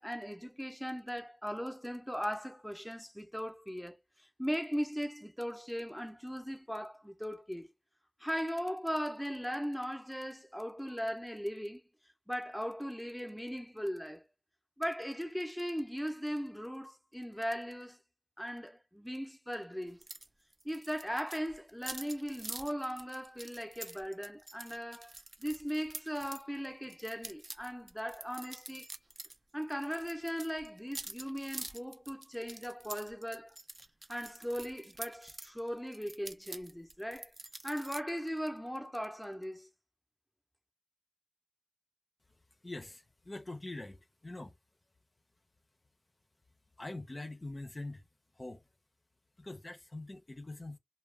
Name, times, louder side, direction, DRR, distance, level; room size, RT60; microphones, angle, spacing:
voice 1, 0.0-7.7 8.2-11.8 12.3-14.2 14.8-18.0 18.4-20.0 20.6-28.9 29.5-33.6 34.1-37.3 37.6-39.7, equal, ahead, 0.5 m, -38 dB
sound 1, 20.0-20.3 20.5-26.4 26.9-29.4 29.6-35.5 35.9-38.0, right 2 dB, 60° right, 0.4 m, -46 dB
voice 2, 42.6-44.5 46.8-48.0 48.3-48.6 49.4-50.8, left 2 dB, 55° left, 0.5 m, -44 dB
2.3 x 2.1 x 3.2 m
wide cardioid pair, 55°, 0 cm